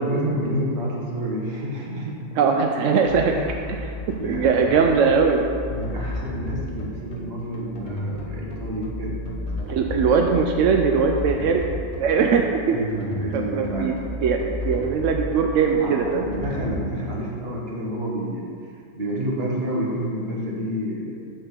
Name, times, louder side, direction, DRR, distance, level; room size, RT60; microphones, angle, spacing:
voice 1, 0.0-2.2 3.2-3.5 4.2-4.7 5.7-9.2 9.5-10.2 12.7-14.0 15.8-21.3, equal, 40° right, -3 dB, 1.4 m, -29 dB
voice 2, 2.4-3.3 4.2-5.4 9.7-12.8 13.3-13.9 14.2-16.2, right 5 dB, 75° right, 3 dB, 0.7 m, -20 dB
sound 1, 3.0-16.7, left 1 dB, 55° left, 1.2 m, -33 dB
7.7 x 3.8 x 6.6 m, 2.2 s
omnidirectional pair, 1.8 m